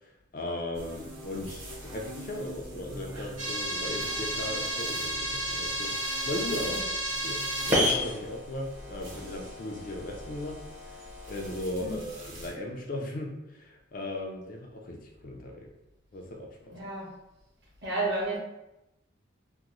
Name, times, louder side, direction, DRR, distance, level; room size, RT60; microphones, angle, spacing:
voice 1, 0.0-6.8 7.2-10.6 10.9-15.7 16.1-16.8, left 1 dB, 45° left, 1 dB, 0.4 m, -37 dB
sound 1, 0.7-12.5, equal, 75° right, 1.0 m, -44 dB
sound 2, 3.4-11.6, equal, 35° right, 0.8 m, -32 dB
voice 2, 16.7-17.1 17.8-18.4, right 2 dB, 55° right, -5 dB, 1.1 m, -31 dB
2.9 x 2.0 x 3.7 m, 0.92 s
head